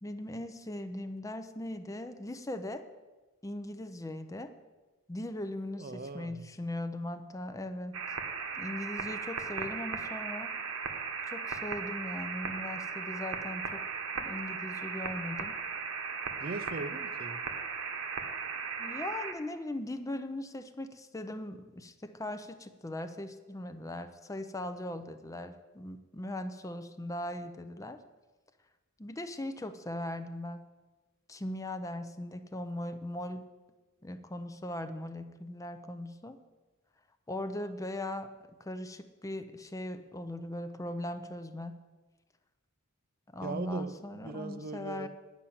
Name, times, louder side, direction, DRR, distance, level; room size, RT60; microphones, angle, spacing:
voice 1, 0.0-2.8 3.4-4.5 5.1-8.0 8.6-10.5 11.3-13.8 14.3-15.6 18.8-28.0 29.0-30.6 31.3-33.4 34.0-36.4 37.3-38.3 38.6-41.7 43.3-45.1, left 1 dB, 15° left, 9 dB, 0.5 m, -39 dB
voice 2, 5.8-6.5 16.4-17.4 43.4-45.1, right 3 dB, 40° right, 11 dB, 0.6 m, -39 dB
sound 1, 7.9-19.3, right 5 dB, 70° right, 1.2 m, -37 dB
10.5 x 5.7 x 8.5 m, 1.2 s
head